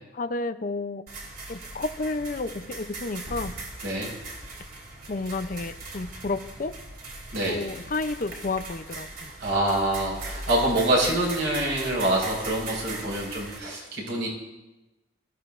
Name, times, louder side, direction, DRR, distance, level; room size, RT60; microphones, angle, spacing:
voice 1, 0.1-1.0 1.5-3.6 5.1-6.8 7.5-9.3, left 3 dB, 45° left, 11 dB, 0.5 m, -31 dB
sound 1, 1.1-13.6, right 2 dB, 50° right, 2.6 m, -39 dB
voice 2, 7.3-7.6 9.4-14.3, right 1 dB, 70° right, -2 dB, 5.0 m, -26 dB
23.5 x 14.0 x 2.5 m, 1.0 s
head